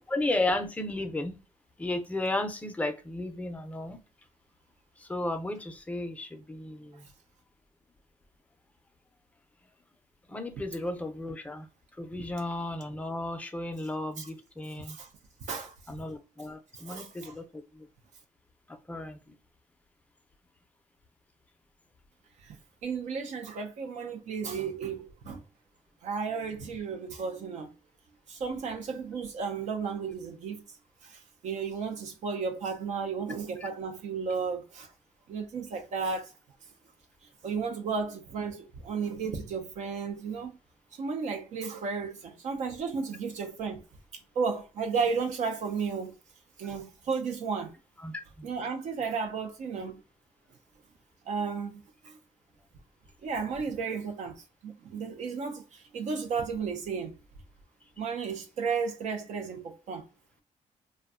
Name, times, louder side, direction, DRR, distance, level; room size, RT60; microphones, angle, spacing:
voice 1, 0.1-1.4 1.8-4.0 5.0-7.1 10.3-11.7 12.0-15.0 15.9-17.9 18.7-19.3 33.6-33.7 35.3-35.5 48.0-48.5, left 2 dB, 10° left, 0.5 m, -34 dB
voice 2, 14.8-15.1 15.5-15.7 16.7-17.3 22.4-25.4 26.0-27.7 28.3-30.6 31.0-34.9 35.3-36.4 37.4-40.5 40.9-43.8 44.4-46.2 46.6-47.7 48.4-50.0 51.3-52.2 53.2-57.1 58.0-60.0, right 5 dB, 65° right, 0.5 m, -33 dB
2.5 x 2.2 x 2.3 m
cardioid pair, 100°, 13 cm